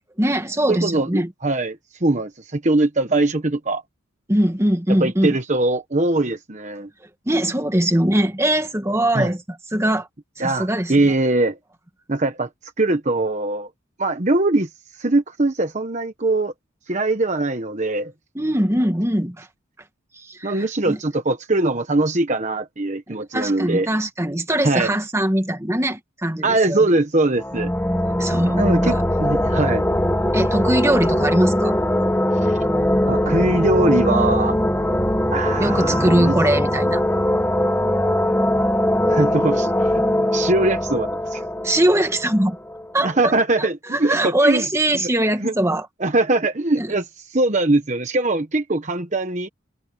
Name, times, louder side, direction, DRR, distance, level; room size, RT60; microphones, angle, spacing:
voice 1, 0.2-1.3 4.3-5.4 7.3-10.1 10.4-11.1 18.4-19.5 20.3-21.0 23.1-26.9 28.2-29.0 30.3-31.8 35.6-37.0 41.6-42.6 42.9-45.9 46.8-46.9, right 1 dB, 15° right, 1.9 m, -21 dB
voice 2, 0.7-3.8 4.9-6.9 9.1-9.3 10.4-11.6 12.1-12.5 12.8-13.7 14.0-14.7 15.0-16.5 16.9-18.1 20.4-23.9 24.6-24.9 26.4-27.7 28.6-29.8 32.4-32.6 33.0-34.6 35.3-36.4 39.1-40.0 40.3-41.4 43.0-44.6 44.9-45.1 45.4-45.5 46.0-49.5, right 2 dB, 35° right, 1.2 m, -21 dB
sound 1, 27.4-42.9, left 1 dB, 10° left, 1.7 m, -21 dB
head